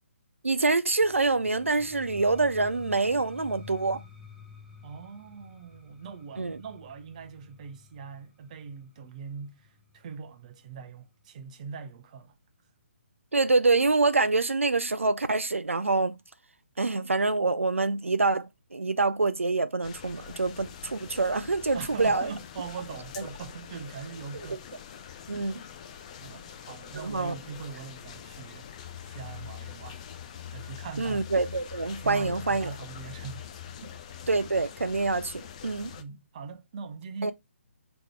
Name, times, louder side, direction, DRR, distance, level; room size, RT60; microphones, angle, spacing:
voice 1, 0.4-4.0 6.4-6.6 13.3-16.1 16.8-22.3 24.5-24.6 25.3-25.5 27.0-27.3 31.0-32.7 34.3-35.9 37.2-37.3, right 3 dB, 80° right, 0.4 m, -26 dB
sound 1, 1.0-10.8, left 6 dB, ahead, 0.9 m, -51 dB
voice 2, 4.8-12.3 21.7-24.7 25.3-25.5 26.2-30.0 30.5-31.2 32.0-33.5 33.8-33.9 35.9-37.3, right 5 dB, 35° right, 0.6 m, -41 dB
sound 2, 19.8-36.0, left 9 dB, 30° left, 0.5 m, -44 dB
3.7 x 3.0 x 4.5 m
figure-of-eight pair, 140°, 7 cm